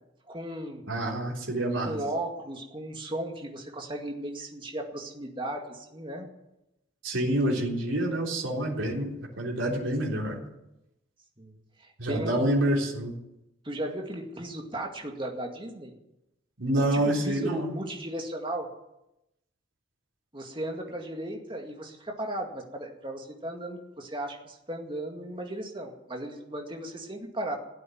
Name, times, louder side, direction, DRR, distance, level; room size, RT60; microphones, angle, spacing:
voice 1, 0.3-0.8 1.8-6.3 11.4-12.6 13.6-15.9 16.8-18.7 20.3-27.6, right 1 dB, 25° right, 2 dB, 2.1 m, -36 dB
voice 2, 0.9-2.0 7.0-9.1 9.4-10.4 12.0-13.1 16.6-17.7, right 1 dB, 75° right, -2 dB, 3.7 m, -27 dB
15.5 x 8.4 x 9.3 m, 0.90 s
head